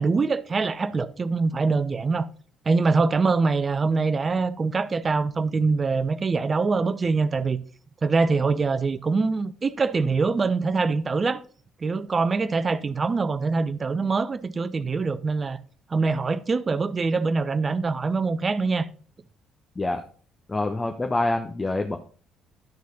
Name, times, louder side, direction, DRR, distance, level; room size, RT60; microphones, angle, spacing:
voice 1, 0.0-2.3 2.7-7.6 8.0-11.4 11.8-15.6 15.9-18.9, right 4 dB, 35° right, 0.7 m, -24 dB
voice 2, 20.5-22.0, left 2 dB, 20° left, 1.0 m, -26 dB
11.5 x 6.3 x 4.0 m
figure-of-eight pair, 45°, 0 cm